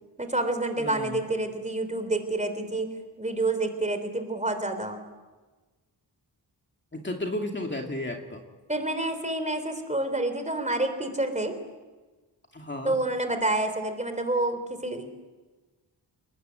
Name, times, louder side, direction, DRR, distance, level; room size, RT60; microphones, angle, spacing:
voice 1, 0.2-2.9 3.2-5.0 8.7-11.5 12.8-15.1, right 2 dB, 15° right, 8 dB, 3.7 m, -28 dB
voice 2, 0.8-1.2 6.9-8.4 12.5-13.0, left 1 dB, 25° left, 2 dB, 2.6 m, -33 dB
28.5 x 20.5 x 9.3 m, 1.2 s
wide cardioid pair, 135°, 43 cm